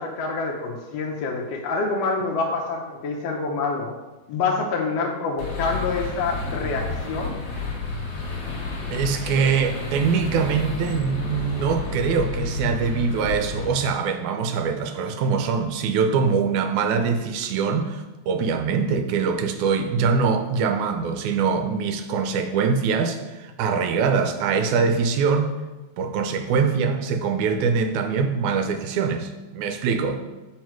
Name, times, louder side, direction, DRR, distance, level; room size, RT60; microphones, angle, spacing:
voice 1, 0.0-3.9 4.3-7.4, left 4 dB, 70° left, -1 dB, 1.7 m, -26 dB
sound 1, 5.4-13.7, left 4 dB, 45° left, 1.4 m, -31 dB
voice 2, 8.9-25.5 26.0-30.2, right 5 dB, 90° right, 7 dB, 2.1 m, -23 dB
7.5 x 4.8 x 4.6 m, 1.1 s
omnidirectional pair, 3.3 m